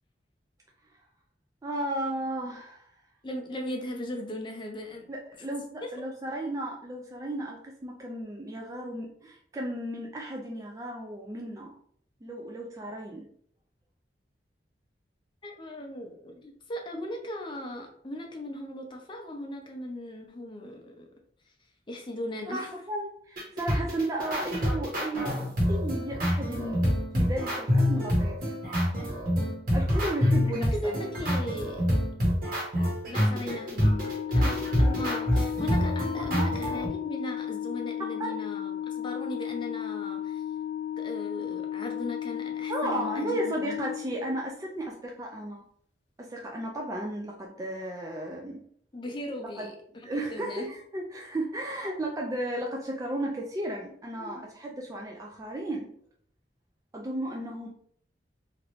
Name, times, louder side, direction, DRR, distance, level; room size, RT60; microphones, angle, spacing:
voice 1, 1.6-2.9 5.1-5.6 5.9-11.7 12.2-13.3 22.5-25.4 25.7-28.5 29.7-31.0 36.2-36.5 38.0-38.3 42.7-45.6 46.2-48.6 49.4-49.7 50.0-55.9 56.9-57.7, right 1 dB, 20° right, -1 dB, 0.3 m, -34 dB
voice 2, 3.2-5.1 5.8-5.9 15.4-21.1 21.9-22.7 30.7-31.9 33.1-33.9 34.3-40.4 41.0-43.8 48.9-49.7 50.1-50.7 54.1-54.4, left 1 dB, 25° left, 2 dB, 0.5 m, -38 dB
sound 1, 23.4-36.9, equal, 50° right, 1.1 m, -26 dB
Organ, 33.8-44.6, left 10 dB, 85° left, 0.3 m, -35 dB
3.0 x 2.5 x 3.0 m, 0.62 s
head